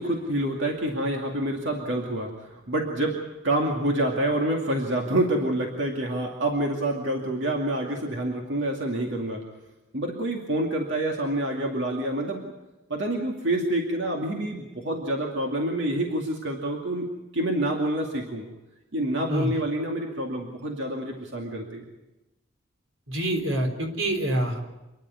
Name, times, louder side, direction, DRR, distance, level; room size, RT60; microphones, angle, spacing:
voice 1, 0.0-9.4 9.9-12.5 12.9-18.5 18.9-21.8, right 1 dB, 65° right, 0 dB, 2.4 m, -27 dB
voice 2, 23.1-24.7, right 1 dB, 90° right, 4 dB, 3.8 m, -26 dB
28.0 x 11.5 x 9.6 m, 1.0 s
head